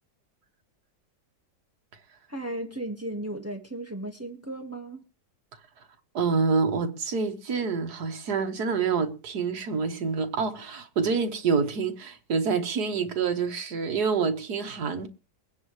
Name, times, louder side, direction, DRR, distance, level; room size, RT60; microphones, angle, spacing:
voice 1, 2.3-5.0, right 1 dB, 10° right, 1.4 m, -35 dB
voice 2, 6.1-15.1, right 5 dB, 65° right, 1.9 m, -27 dB
23.0 x 9.8 x 3.2 m
omnidirectional pair, 1.9 m